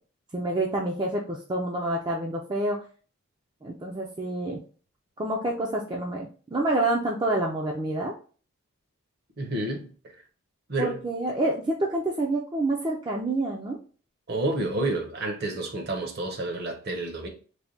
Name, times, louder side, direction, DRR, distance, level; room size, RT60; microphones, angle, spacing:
voice 1, 0.3-2.8 3.6-4.6 5.2-8.1 10.8-13.8, right 2 dB, 20° right, 0.4 m, -28 dB
voice 2, 9.4-9.8 10.7-11.0 14.3-17.3, right 2 dB, 50° right, 0.8 m, -29 dB
3.4 x 2.2 x 3.7 m
head